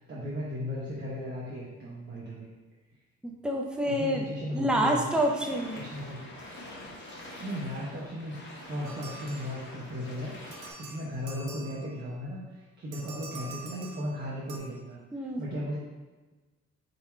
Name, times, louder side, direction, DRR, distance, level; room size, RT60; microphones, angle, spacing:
voice 1, 0.0-2.5 3.8-5.1 5.7-6.3 7.4-15.8, equal, 35° right, -7 dB, 1.0 m, -36 dB
voice 2, 3.2-4.2 4.5-5.8 15.1-15.4, right 1 dB, 5° right, 0 dB, 0.6 m, -27 dB
sound 1, 5.1-10.7, left 1 dB, 40° left, 1.2 m, -45 dB
sound 2, 8.8-10.0 10.5-12.2 12.9-14.6, right 4 dB, 80° right, 0.8 m, -46 dB
3.9 x 2.8 x 4.4 m, 1.2 s
cardioid pair, 90°, 30 cm